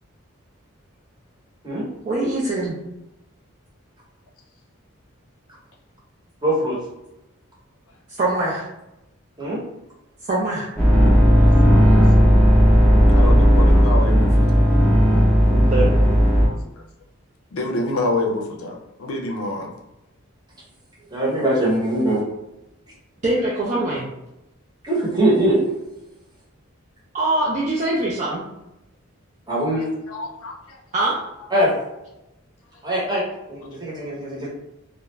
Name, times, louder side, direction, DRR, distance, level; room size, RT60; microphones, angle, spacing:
voice 1, 2.1-2.7 8.2-8.7 10.2-10.7 15.5-15.9 23.2-24.1 27.1-28.4 30.9-31.2, right 2 dB, 35° right, -6 dB, 0.4 m, -22 dB
voice 2, 6.4-6.8 9.4-9.6 11.5-11.6 21.1-22.2 24.8-25.6 29.5-29.9 31.5-31.7 32.8-33.2 33.5-34.5, right 1 dB, 20° right, -6 dB, 0.8 m, -21 dB
sound 1, 10.8-16.5, equal, 10° left, 0.6 m, -14 dB
voice 3, 11.4-12.2 13.1-14.7 16.5-16.6 17.5-19.7 30.1-30.8, left 1 dB, 85° left, 1 dB, 0.5 m, -28 dB
2.3 x 2.1 x 3.0 m, 0.91 s
head